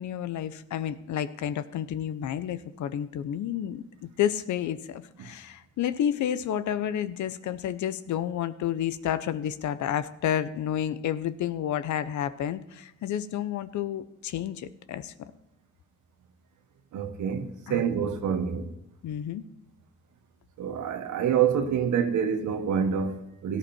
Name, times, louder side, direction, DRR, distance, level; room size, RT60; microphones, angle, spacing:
voice 1, 0.0-15.1 17.7-17.9 19.0-19.4, left 10 dB, 70° left, 0.9 m, -30 dB
voice 2, 16.9-18.7 20.6-23.6, right 7 dB, 75° right, 1.6 m, -27 dB
17.5 x 11.5 x 4.4 m
cardioid pair, 90°, 30 cm